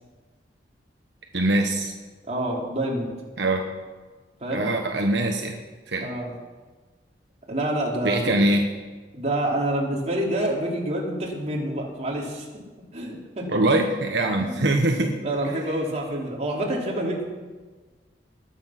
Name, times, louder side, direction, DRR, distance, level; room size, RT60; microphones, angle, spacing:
voice 1, 1.3-1.9 3.4-3.6 4.5-5.6 5.9-6.1 8.0-8.6 13.5-15.1, right 1 dB, 80° right, 2 dB, 1.3 m, -22 dB
voice 2, 2.3-3.1 4.4-4.7 6.0-6.3 7.5-8.3 9.1-12.4 12.9-13.5 14.4-14.6 15.0-17.2, right 1 dB, 40° right, -2 dB, 3.3 m, -27 dB
20.0 x 8.8 x 5.9 m, 1.3 s
head